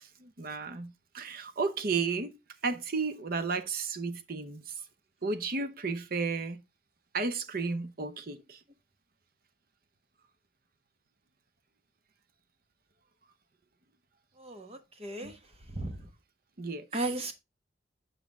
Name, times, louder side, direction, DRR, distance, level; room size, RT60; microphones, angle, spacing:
voice 1, 0.0-2.3 2.6-4.8 5.2-6.6 7.1-8.6 15.2-15.3 16.6-16.9, right 4 dB, 55° right, 0.8 m, -33 dB
voice 2, 14.4-15.4 15.7-16.1 16.9-17.3, right 2 dB, 35° right, 1.2 m, -36 dB
7.3 x 5.6 x 3.5 m
head